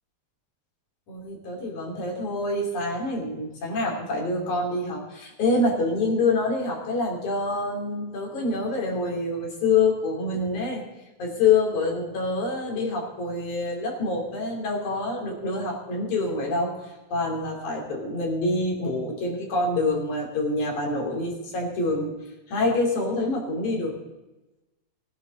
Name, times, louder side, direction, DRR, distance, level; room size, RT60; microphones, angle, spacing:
voice 1, 1.1-10.8 11.2-22.1 22.5-23.9, left 3 dB, 80° left, -1 dB, 4.8 m, -26 dB
20.0 x 10.5 x 3.9 m, 1.0 s
omnidirectional pair, 3.4 m